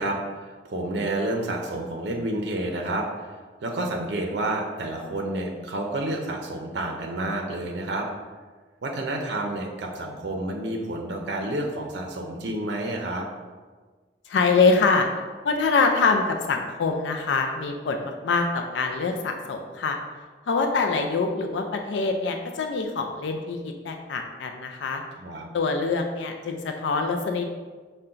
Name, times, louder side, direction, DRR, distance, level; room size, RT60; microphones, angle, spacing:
voice 1, 0.0-3.1 3.6-8.1 8.8-13.3 25.2-25.4, right 1 dB, 70° right, 1 dB, 0.5 m, -29 dB
voice 2, 14.3-15.1 15.4-20.0 20.4-25.0 25.5-27.4, left 4 dB, 80° left, 4 dB, 0.4 m, -24 dB
5.5 x 2.2 x 3.7 m, 1.4 s
head